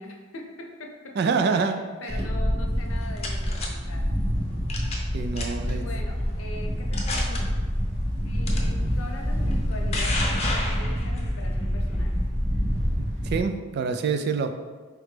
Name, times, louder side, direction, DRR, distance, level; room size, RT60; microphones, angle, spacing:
voice 1, 0.0-1.1 1.4-4.1 5.6-7.4 8.2-12.2, left 2 dB, 70° left, 1 dB, 0.7 m, -41 dB
voice 2, 1.2-1.8 5.1-5.9 13.0-14.5, right 5 dB, 50° right, 7 dB, 0.3 m, -26 dB
Wind, 2.1-13.4, equal, 35° right, 1.1 m, -27 dB
sound 1, 2.8-3.7 4.7-5.1 5.4-5.7 6.3-6.4 6.9-7.4 8.5-8.6 9.5-11.3, left 2 dB, 30° left, 0.6 m, -31 dB
4.8 x 3.2 x 3.2 m, 1.4 s
head